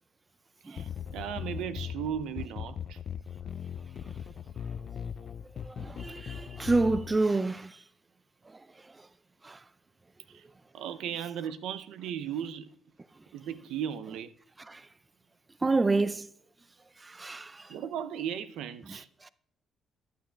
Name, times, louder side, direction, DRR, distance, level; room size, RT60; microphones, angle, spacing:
voice 1, 0.6-3.0 10.3-10.4 10.7-12.7 13.3-14.3 15.9-16.1 17.7-19.1, right 9 dB, 85° right, 0.5 m, -36 dB
sound 1, 0.8-7.2, left 8 dB, 55° left, 0.3 m, -39 dB
voice 2, 5.6-7.7 9.4-9.6 14.7-14.8 15.6-16.3 17.1-17.6, right 3 dB, 20° right, 0.4 m, -28 dB
14.5 x 10.0 x 2.2 m
cardioid pair, 90°, 0 cm